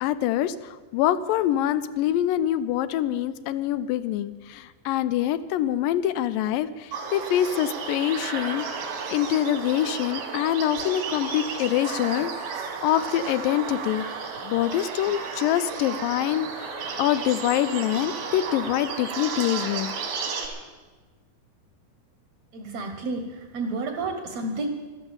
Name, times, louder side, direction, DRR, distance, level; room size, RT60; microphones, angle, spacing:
voice 1, 0.0-8.7 9.1-14.0 14.4-19.9, left 12 dB, 80° left, 14 dB, 2.1 m, -25 dB
sound 1, 6.9-20.5, right 5 dB, 85° right, 3.8 m, -33 dB
voice 2, 22.5-24.7, right 2 dB, 60° right, 6 dB, 2.0 m, -31 dB
14.0 x 13.0 x 7.0 m, 1.3 s
omnidirectional pair, 4.2 m